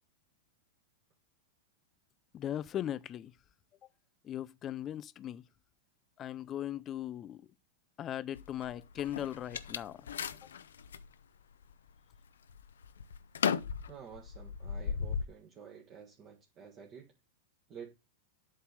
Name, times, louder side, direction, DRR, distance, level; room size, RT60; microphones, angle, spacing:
voice 1, 2.3-3.3 4.2-5.4 6.2-7.4 8.0-10.0, left 11 dB, 30° left, 0.4 m, -38 dB
sound 1, 8.4-11.1 11.6-12.2 12.5-15.3, left 7 dB, 90° left, 0.6 m, -36 dB
voice 2, 13.9-17.1 17.7-18.0, right 7 dB, 35° right, 1.5 m, -51 dB
8.2 x 3.3 x 6.3 m
hypercardioid pair, 120°, 0 cm